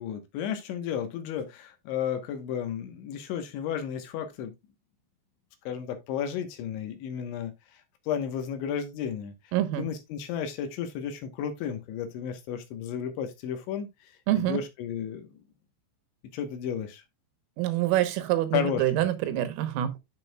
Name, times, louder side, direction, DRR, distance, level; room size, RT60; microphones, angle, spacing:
voice 1, 0.0-4.5 5.7-7.8 8.1-15.3 16.3-17.0 18.5-19.1, left 8 dB, 75° left, 3.4 m, -33 dB
voice 2, 9.5-9.8 14.3-14.6 17.6-19.9, right 13 dB, 85° right, 3.6 m, -26 dB
12.0 x 6.4 x 2.3 m
omnidirectional pair, 5.8 m